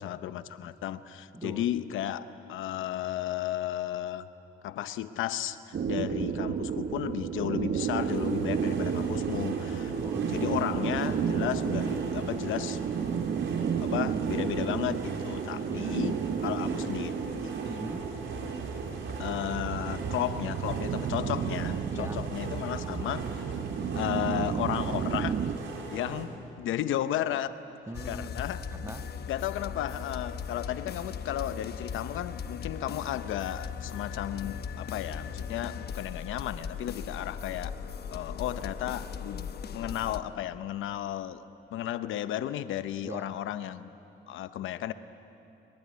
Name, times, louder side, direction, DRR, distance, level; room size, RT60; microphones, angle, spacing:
voice 1, 0.0-4.3 4.6-10.0 10.3-12.8 13.1-13.3 13.8-17.5 19.2-23.3 23.9-25.4 25.7-27.5 28.1-28.6 29.3-37.7 38.1-41.4 41.7-43.9 44.3-44.9, left 12 dB, 80° left, 12 dB, 0.9 m, -34 dB
voice 2, 1.3-1.6 10.0-10.3 15.7-16.8 17.7-18.1 21.9-22.2 27.9-29.1 43.0-43.4, right 1 dB, 15° right, 7 dB, 1.5 m, -41 dB
sound 1, 5.7-25.6, right 7 dB, 55° right, 1.2 m, -32 dB
sound 2, 7.8-26.3, right 3 dB, 75° right, 4.5 m, -40 dB
sound 3, 27.9-40.2, left 6 dB, 55° left, 1.1 m, -38 dB
24.0 x 22.0 x 9.6 m, 2.9 s
cardioid pair, 90°, 20 cm